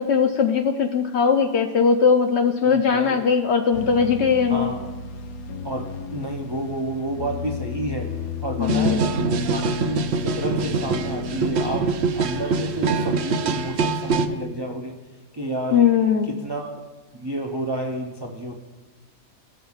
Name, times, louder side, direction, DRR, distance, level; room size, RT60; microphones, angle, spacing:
voice 1, 0.0-4.7 8.6-9.1 15.7-16.3, left 6 dB, 65° left, 5 dB, 0.7 m, -19 dB
voice 2, 2.6-3.2 4.5-4.8 5.6-8.1 8.4-15.0 15.3-15.8 16.2-16.8 17.1-18.6, right 1 dB, 45° right, 0 dB, 0.3 m, -30 dB
sound 1, 3.7-13.7, left 5 dB, 90° left, 1.1 m, -33 dB
sound 2, 8.6-14.3, right 4 dB, 65° right, 0.7 m, -24 dB
16.5 x 6.1 x 2.4 m, 1.3 s
omnidirectional pair, 1.5 m